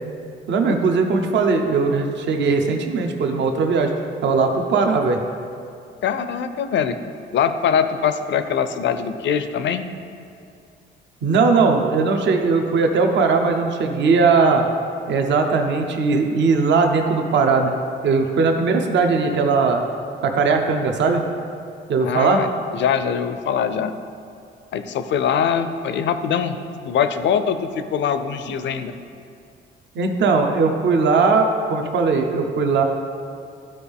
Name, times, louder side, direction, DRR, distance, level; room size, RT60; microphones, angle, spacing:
voice 1, 0.5-3.9 4.2-5.2 11.2-14.6 15.1-17.7 18.0-19.8 20.2-21.3 21.9-22.4 30.0-32.8, right 4 dB, 65° right, 4 dB, 0.8 m, -19 dB
voice 2, 6.0-7.0 7.3-9.9 22.0-23.9 24.7-26.6 26.8-28.9, left 7 dB, 65° left, 10 dB, 0.5 m, -22 dB
12.5 x 4.3 x 3.5 m, 2.4 s
cardioid pair, 90°, 20 cm